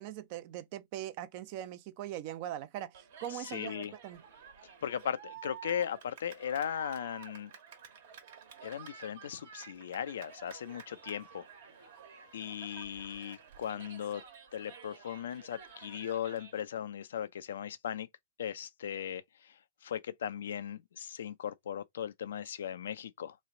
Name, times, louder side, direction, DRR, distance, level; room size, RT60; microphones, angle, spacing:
voice 1, 0.0-4.2, right 12 dB, 50° right, 0.5 m, -41 dB
Cheering, 2.9-16.6, right 7 dB, 65° right, 1.2 m, -52 dB
voice 2, 3.3-3.9 4.8-7.5 8.6-11.5 12.3-14.2 14.5-18.1 18.4-19.5 19.8-23.4, left 9 dB, 70° left, 0.4 m, -38 dB
3.2 x 2.4 x 3.7 m
hypercardioid pair, 110°, 0 cm